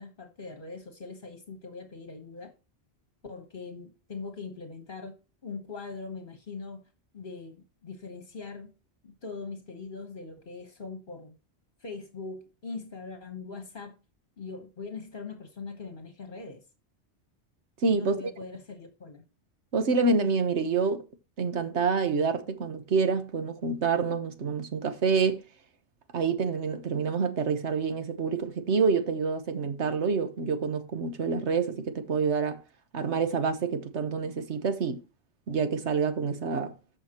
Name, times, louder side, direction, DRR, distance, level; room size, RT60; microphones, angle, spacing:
voice 1, 0.0-2.5 3.2-5.2 5.4-6.8 7.1-8.7 9.0-11.4 11.8-14.0 14.4-16.6 17.9-19.2, left 4 dB, 50° left, 1.4 m, -41 dB
voice 2, 17.8-18.2 19.7-21.0 21.4-25.4 26.1-32.6 32.9-35.0 35.5-36.7, right 5 dB, 80° right, 1.4 m, -27 dB
14.0 x 5.4 x 2.9 m
omnidirectional pair, 1.1 m